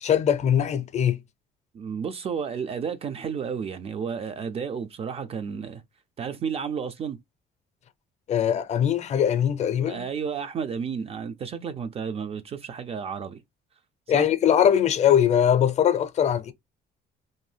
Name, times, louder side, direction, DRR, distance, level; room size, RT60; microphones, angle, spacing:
voice 1, 0.0-1.2 8.3-10.0 14.1-16.5, left 9 dB, 40° left, 0.5 m, -21 dB
voice 2, 1.7-5.8 6.2-7.2 9.9-13.4 14.1-14.3, right 6 dB, 35° right, 0.3 m, -32 dB
2.6 x 2.1 x 3.2 m
cardioid pair, 110°, 17 cm